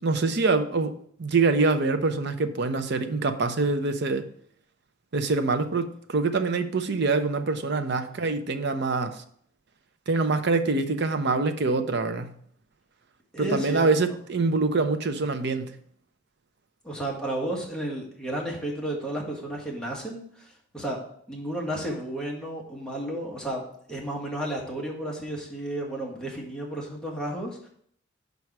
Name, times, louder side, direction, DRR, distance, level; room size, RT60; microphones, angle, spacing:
voice 1, 0.0-4.3 5.1-9.2 10.1-12.3 13.4-15.7, right 3 dB, 60° right, 9 dB, 0.6 m, -25 dB
voice 2, 8.8-9.2 13.3-13.9 16.8-21.0 21.3-27.7, right 1 dB, 5° left, -3 dB, 1.5 m, -33 dB
5.4 x 4.7 x 5.9 m, 0.64 s
head